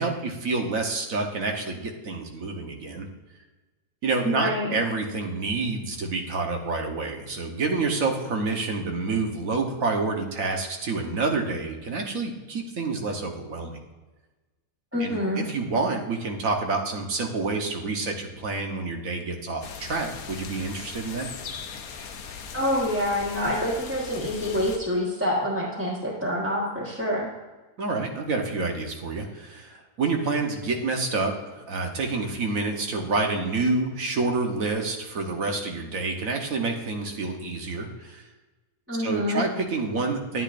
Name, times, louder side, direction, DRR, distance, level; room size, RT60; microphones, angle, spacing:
voice 1, 0.0-3.1 4.0-13.8 15.0-21.3 27.8-38.3 38.9-40.4, right 3 dB, 65° right, 3 dB, 1.5 m, -28 dB
voice 2, 4.2-4.7 14.9-15.4 22.5-27.3 38.9-39.4, equal, 10° right, -7 dB, 1.2 m, -26 dB
sound 1, 19.6-24.8, left 6 dB, 70° left, 1.2 m, -39 dB
10.5 x 9.6 x 2.5 m, 1.2 s
omnidirectional pair, 1.6 m